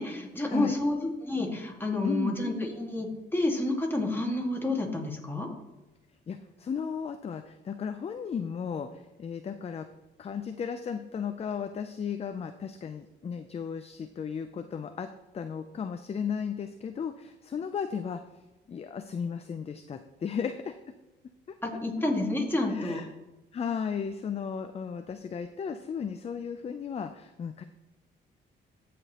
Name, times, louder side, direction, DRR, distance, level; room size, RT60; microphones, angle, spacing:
voice 1, 0.0-5.5 21.6-23.0, left 1 dB, 10° left, 0 dB, 1.8 m, -29 dB
voice 2, 2.0-2.4 6.3-9.9 10.2-15.1 15.3-18.2 18.7-20.8 22.7-23.1 23.5-27.6, left 7 dB, 30° left, 8 dB, 0.4 m, -35 dB
14.5 x 5.0 x 2.9 m, 1.1 s
cardioid pair, 90°, 20 cm